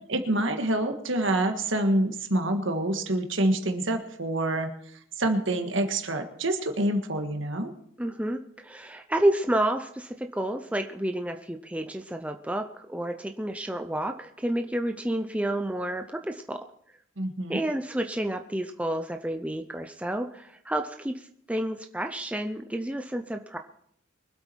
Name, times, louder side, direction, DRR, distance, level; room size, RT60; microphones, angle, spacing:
voice 1, 0.1-4.7 5.2-7.7 17.2-17.6, right 1 dB, 65° right, 5 dB, 1.6 m, -27 dB
voice 2, 8.0-16.6 17.5-23.6, right 1 dB, 5° right, 5 dB, 0.5 m, -30 dB
23.5 x 8.4 x 4.5 m, 0.70 s
head